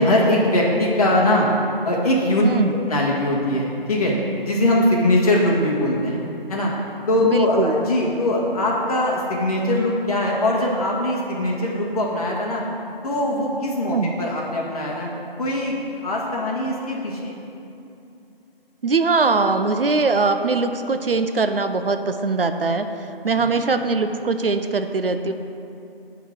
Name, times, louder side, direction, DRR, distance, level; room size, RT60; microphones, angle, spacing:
voice 1, 0.0-1.5 1.8-4.2 4.4-6.2 6.5-6.7 7.1-12.6 13.0-15.1 15.4-17.4 23.3-23.5, left 1 dB, 40° left, -3 dB, 1.8 m, -21 dB
voice 2, 2.4-2.7 7.2-7.8 13.8-14.1 18.8-25.3, right 4 dB, 70° right, 8 dB, 0.7 m, -21 dB
10.5 x 4.0 x 7.5 m, 2.7 s
figure-of-eight pair, 155°, 30 cm